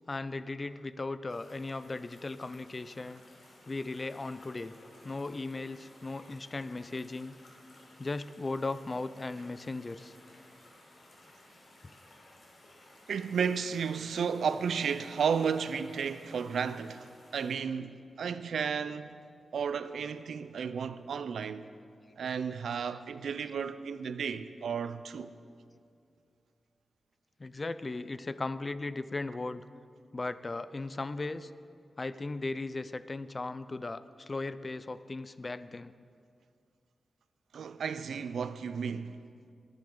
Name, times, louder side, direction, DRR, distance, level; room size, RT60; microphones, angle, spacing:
voice 1, 0.1-3.2 3.7-4.7 5.0-7.4 8.0-10.2 27.4-29.6 30.1-31.5 32.0-35.9, left 3 dB, 35° left, 0.4 m, -37 dB
sound 1, 1.3-17.6, left 1 dB, 65° left, 3.6 m, -57 dB
voice 2, 13.1-19.2 19.5-21.7 22.2-25.3 37.5-39.2, right 6 dB, 90° right, 0.5 m, -33 dB
19.0 x 10.5 x 3.8 m
wide cardioid pair, 90°, 0 cm